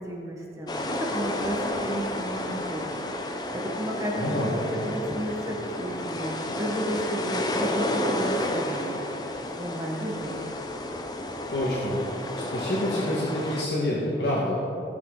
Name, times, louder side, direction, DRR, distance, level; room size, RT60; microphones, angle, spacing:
voice 1, 0.0-9.0 9.6-10.4, right 1 dB, 20° right, -2 dB, 1.3 m, -33 dB
sound 1, 0.7-13.6, left 1 dB, 25° left, 0.7 m, -31 dB
voice 2, 4.1-4.5 11.5-12.0 12.4-14.6, left 1 dB, 70° left, -5 dB, 1.6 m, -27 dB
17.5 x 6.8 x 3.9 m, 2.8 s
head